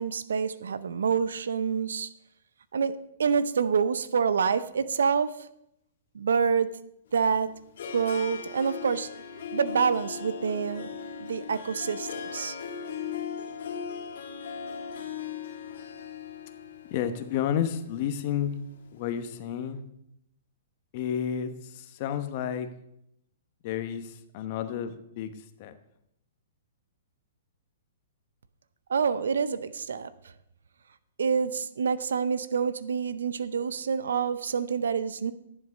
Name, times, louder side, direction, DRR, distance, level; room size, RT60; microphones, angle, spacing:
voice 1, 0.0-2.1 2.7-5.5 6.1-6.7 7.1-7.5 7.9-9.1 9.5-10.9 11.2-12.6 28.9-30.1 31.2-35.3, right 6 dB, 75° right, 16 dB, 0.6 m, -27 dB
Harp, 7.1-19.2, left 7 dB, 65° left, 1.6 m, -39 dB
voice 2, 16.8-18.6 18.9-19.8 20.9-22.7 23.6-25.8, left 9 dB, 45° left, 9 dB, 1.1 m, -31 dB
11.0 x 7.3 x 5.2 m, 0.78 s
hypercardioid pair, 120°, 0 cm